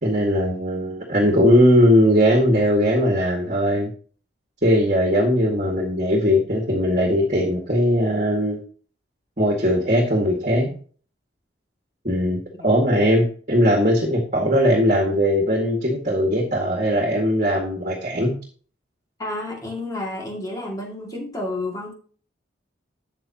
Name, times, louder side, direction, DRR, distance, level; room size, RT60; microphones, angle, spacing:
voice 1, 0.0-3.9 4.6-8.6 9.4-10.7 12.0-18.3, equal, 40° right, 1 dB, 1.9 m, -19 dB
voice 2, 19.2-21.9, left 2 dB, 20° left, -1 dB, 2.2 m, -30 dB
12.5 x 8.3 x 2.9 m, 0.42 s
head